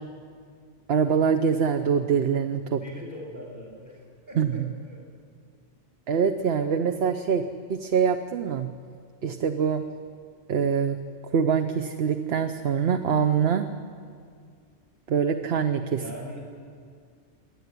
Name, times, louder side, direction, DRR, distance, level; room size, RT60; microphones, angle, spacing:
voice 1, 0.9-2.8 4.4-4.7 6.1-7.4 7.7-8.7 9.2-9.9 10.5-11.0 11.2-13.7 15.1-16.0, right 6 dB, 60° right, 7 dB, 1.0 m, -24 dB
voice 2, 2.7-5.2 15.9-16.4, equal, 40° right, -1 dB, 7.2 m, -41 dB
26.5 x 11.5 x 9.6 m, 2.2 s
omnidirectional pair, 1.2 m